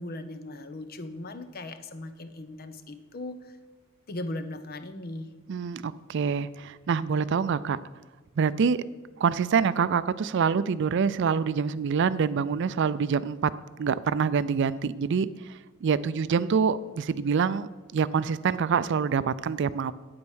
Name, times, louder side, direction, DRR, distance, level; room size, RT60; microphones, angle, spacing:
voice 1, 0.0-3.5 4.1-5.3, left 2 dB, 45° left, 11 dB, 0.7 m, -38 dB
voice 2, 5.5-7.8 8.4-8.8 9.2-13.5 13.8-19.9, right 6 dB, 60° right, 16 dB, 0.4 m, -26 dB
8.8 x 8.7 x 6.3 m, 1.3 s
head